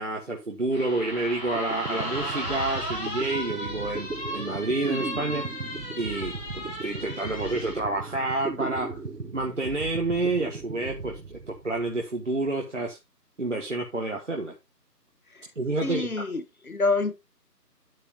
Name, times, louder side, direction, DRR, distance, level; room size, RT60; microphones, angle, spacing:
voice 1, 0.0-5.5 6.0-9.0 9.3-13.0 13.4-14.6 15.6-16.1, right 2 dB, 45° right, 1.7 m, -29 dB
sound 1, 0.7-7.8, equal, 10° left, 2.4 m, -35 dB
sound 2, 1.5-12.0, right 4 dB, 80° right, 1.4 m, -37 dB
voice 2, 15.8-17.1, left 3 dB, 60° left, 1.7 m, -27 dB
11.5 x 7.2 x 2.9 m
figure-of-eight pair, 170°, 49 cm